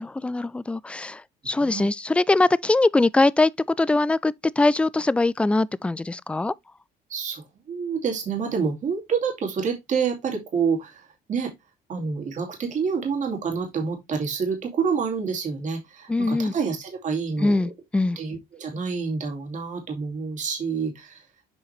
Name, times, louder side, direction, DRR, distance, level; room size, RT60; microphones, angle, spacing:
voice 1, 0.0-6.5 16.1-16.5 17.4-18.2, left 2 dB, 5° left, 0.3 m, -22 dB
voice 2, 7.1-11.5 11.9-17.5 18.2-21.2, right 5 dB, 45° right, 2.5 m, -28 dB
7.4 x 4.8 x 3.3 m
cardioid pair, 110°, 17 cm